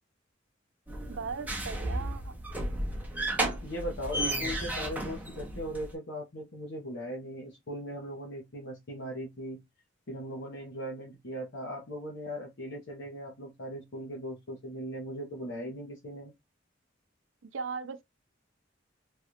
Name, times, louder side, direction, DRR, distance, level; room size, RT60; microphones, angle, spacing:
sound 1, 0.9-5.9, right 1 dB, 10° right, 0.8 m, -33 dB
voice 1, 1.1-2.4 17.4-18.0, right 5 dB, 75° right, 0.5 m, -38 dB
voice 2, 3.6-9.6 10.1-16.3, equal, 65° left, 0.9 m, -39 dB
3.3 x 2.4 x 2.8 m
head